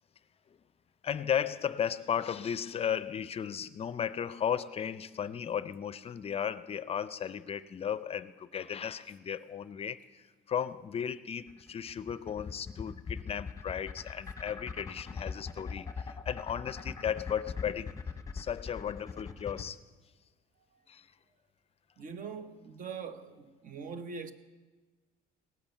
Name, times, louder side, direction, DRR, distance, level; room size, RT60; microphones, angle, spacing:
voice 1, 1.0-17.9 18.3-19.8 20.9-21.1, left 8 dB, 35° left, 0.5 m, -35 dB
sound 1, 11.5-19.7, left 5 dB, 20° left, 0.9 m, -40 dB
voice 2, 22.0-24.3, right 5 dB, 55° right, 1.0 m, -42 dB
18.0 x 8.7 x 7.1 m
cardioid pair, 110°, 17 cm